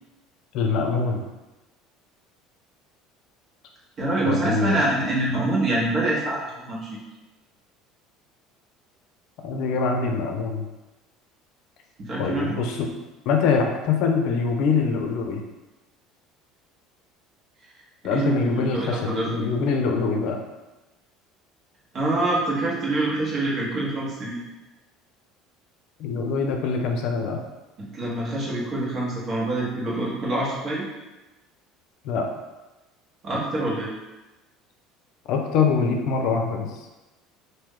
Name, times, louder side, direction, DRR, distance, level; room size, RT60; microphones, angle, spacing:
voice 1, 0.5-1.2 4.3-4.8 9.4-10.7 12.2-12.9 13.3-15.4 18.0-20.4 26.0-27.4 32.0-32.3 35.3-36.7, left 5 dB, 65° left, 3 dB, 0.5 m, -24 dB
voice 2, 4.0-7.0 12.0-12.6 18.0-19.3 21.9-24.4 27.8-30.8 33.2-33.9, right 2 dB, 45° right, -4 dB, 1.2 m, -25 dB
3.0 x 2.7 x 3.7 m, 1.1 s
supercardioid pair, 95°, 0 cm